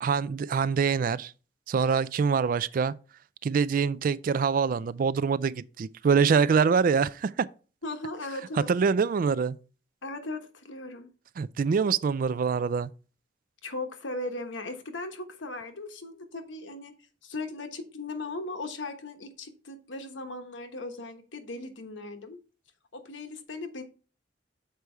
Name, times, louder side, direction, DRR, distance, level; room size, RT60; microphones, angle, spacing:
voice 1, 0.0-1.3 1.7-2.9 3.4-7.5 8.7-9.6 11.4-12.9, right 5 dB, 45° right, 0.3 m, -25 dB
voice 2, 7.8-8.7 10.0-11.1 13.6-16.9 17.2-22.4 22.9-23.8, left 2 dB, 90° left, 1.2 m, -38 dB
6.8 x 4.7 x 4.5 m
head